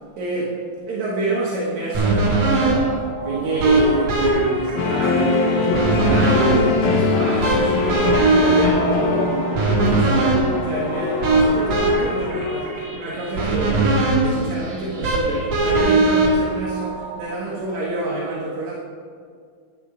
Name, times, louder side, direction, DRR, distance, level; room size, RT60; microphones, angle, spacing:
voice 1, 0.2-18.7, right 3 dB, 65° right, -7 dB, 1.8 m, -27 dB
sound 1, 1.9-17.2, right 2 dB, 50° right, 2.6 m, -21 dB
sound 2, 3.6-13.0, left 2 dB, 65° left, 3.5 m, -30 dB
sound 3, 4.8-12.3, left 5 dB, 80° left, 2.2 m, -24 dB
11.0 x 10.5 x 3.8 m, 2.1 s
omnidirectional pair, 5.3 m